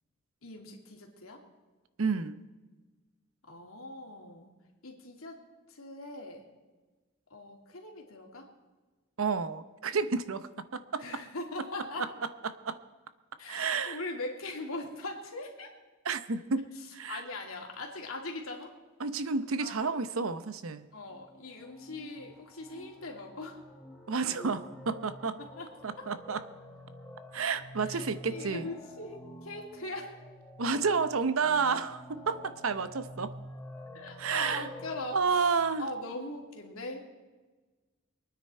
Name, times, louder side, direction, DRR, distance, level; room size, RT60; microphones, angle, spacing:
voice 1, 0.4-1.4 3.5-4.5 4.8-5.4 5.7-6.5 7.3-8.5 11.0-12.1 13.4-15.7 17.1-18.7 19.6-19.9 20.9-23.6 25.4-25.7 27.9-30.2 33.9-35.2 35.8-37.0, left 2 dB, 90° left, 1 dB, 2.6 m, -41 dB
voice 2, 2.0-2.4 9.2-11.2 12.0-12.8 13.5-14.0 16.0-16.7 16.9-17.2 19.0-20.9 24.1-25.4 25.8-26.4 27.3-28.7 30.6-33.3 34.2-34.7 35.1-35.9, right 5 dB, 80° right, 13 dB, 0.8 m, -31 dB
sound 1, 20.9-35.6, left 1 dB, 5° left, 1.5 m, -49 dB
24.0 x 9.6 x 4.4 m, 1.3 s
head